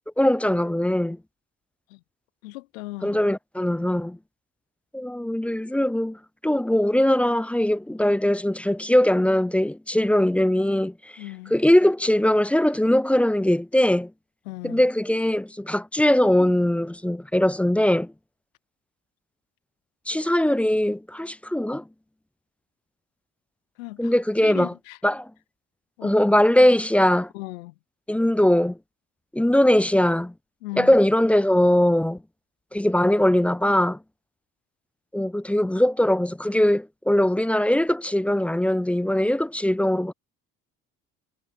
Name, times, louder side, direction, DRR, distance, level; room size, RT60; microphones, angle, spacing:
voice 1, 0.2-1.2 3.0-4.2 4.9-6.2 6.4-10.9 11.5-14.1 14.6-18.1 20.1-21.8 24.0-24.7 25.0-25.3 26.0-27.3 28.1-28.8 29.3-30.3 30.8-32.2 32.7-34.0 35.1-40.1, left 1 dB, 5° left, 0.4 m, -21 dB
voice 2, 2.4-3.2 11.2-11.5 14.5-14.9 23.8-24.1 24.4-25.0 26.0-26.2 27.3-27.7 30.6-31.0, left 20 dB, 75° left, 0.8 m, -37 dB
figure-of-eight pair, 50°, 40 cm